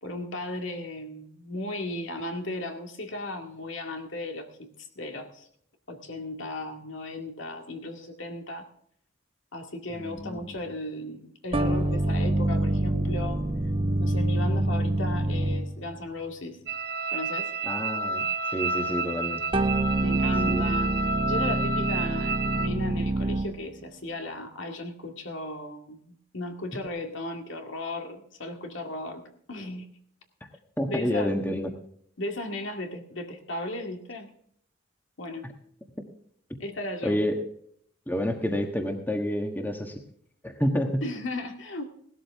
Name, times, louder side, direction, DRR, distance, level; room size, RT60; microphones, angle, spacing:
voice 1, 0.0-5.5 5.9-8.7 9.5-13.4 14.0-16.6 17.1-17.5 20.0-20.9 21.3-29.2 29.5-29.9 30.9-31.4 32.2-34.3 35.2-35.5 36.6-37.2 41.0-41.9, left 1 dB, 75° left, 4 dB, 2.1 m, -36 dB
voice 2, 10.0-10.6 17.6-18.2 18.5-19.4 20.5-20.6 30.8-31.7 37.0-37.4 38.1-39.9 40.4-41.0, equal, 10° left, 4 dB, 1.3 m, -28 dB
sound 1, 11.5-16.0 19.5-23.7, right 1 dB, 25° right, 0.7 m, -26 dB
sound 2, 16.7-22.7, right 3 dB, 50° right, 1.0 m, -30 dB
17.5 x 12.5 x 3.5 m, 0.66 s
head